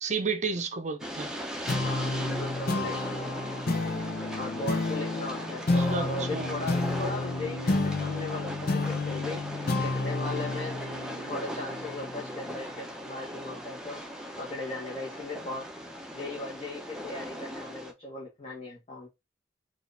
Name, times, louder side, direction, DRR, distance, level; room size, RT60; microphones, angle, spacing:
voice 1, 0.0-1.3 5.8-6.5, right 5 dB, 40° right, 0.6 m, -31 dB
Train, 1.0-17.9, equal, 5° right, 0.7 m, -38 dB
sound 1, 1.7-12.5, left 2 dB, 55° left, 0.7 m, -31 dB
voice 2, 1.8-3.6 4.4-9.4 9.8-10.8 11.3-14.0 14.4-15.7 16.1-19.1, left 2 dB, 35° left, 1.2 m, -38 dB
4.7 x 2.5 x 3.3 m
head